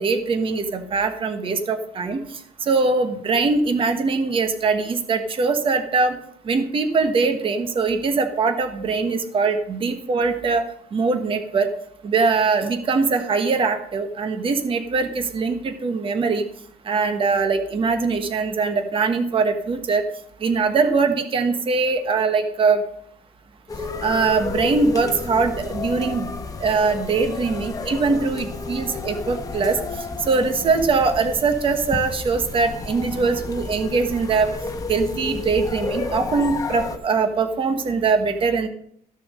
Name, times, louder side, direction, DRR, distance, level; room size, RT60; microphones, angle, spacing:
voice 1, 0.0-2.2 2.7-6.2 6.4-10.6 10.9-11.7 12.0-16.4 16.8-20.0 20.4-22.8 24.0-26.3 26.6-29.8 30.3-34.5 34.9-38.7, right 4 dB, 35° right, 7 dB, 1.3 m, -22 dB
sound 1, 23.7-37.0, left 3 dB, 20° left, 1.1 m, -31 dB
14.0 x 6.8 x 5.3 m, 0.68 s
cardioid pair, 145°, 16 cm